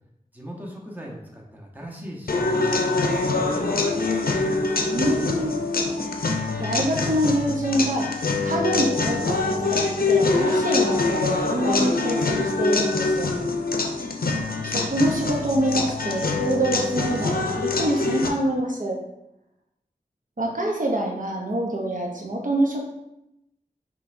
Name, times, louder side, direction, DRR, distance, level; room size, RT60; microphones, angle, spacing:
voice 1, 0.3-4.2 13.2-13.6, equal, 10° right, -2 dB, 0.9 m, -38 dB
sound 1, 2.3-18.3, left 3 dB, 70° left, 0.5 m, -24 dB
voice 2, 4.9-5.6 6.0-8.2 8.4-13.3 14.6-19.0 20.4-22.8, right 1 dB, 60° right, -1 dB, 0.7 m, -25 dB
5.5 x 3.2 x 2.6 m, 0.85 s
wide cardioid pair, 50°, 15 cm